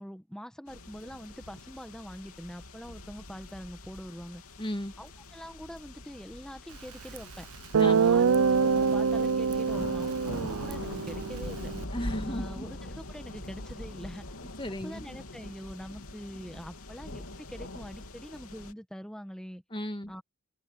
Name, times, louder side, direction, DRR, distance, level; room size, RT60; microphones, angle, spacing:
voice 1, 0.0-4.4 5.0-7.5 7.9-11.7 12.2-14.3 14.8-19.6 20.1-20.2, equal, 5° left, 1.3 m, -44 dB
sound 1, 0.7-18.7, left 1 dB, 75° left, 3.3 m, -43 dB
voice 2, 4.6-4.9 7.8-8.0 11.9-12.6 14.6-15.2 19.7-20.1, equal, 25° left, 2.0 m, -35 dB
Guitar, 7.2-7.3 7.7-11.8, right 5 dB, 75° right, 0.5 m, -25 dB
head